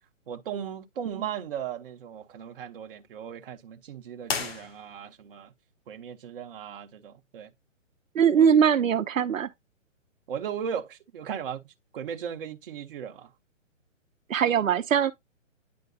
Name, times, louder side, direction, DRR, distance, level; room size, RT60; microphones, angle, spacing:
voice 1, 0.3-5.5 5.9-7.5 8.4-8.5 10.3-11.7 11.9-13.3, right 8 dB, 45° right, 1.0 m, -37 dB
sound 1, 4.2-5.3, left 5 dB, 50° left, 1.3 m, -34 dB
voice 2, 8.1-9.5 14.3-15.1, right 8 dB, 85° right, 0.8 m, -21 dB
9.6 x 4.5 x 2.7 m
hypercardioid pair, 150°, 38 cm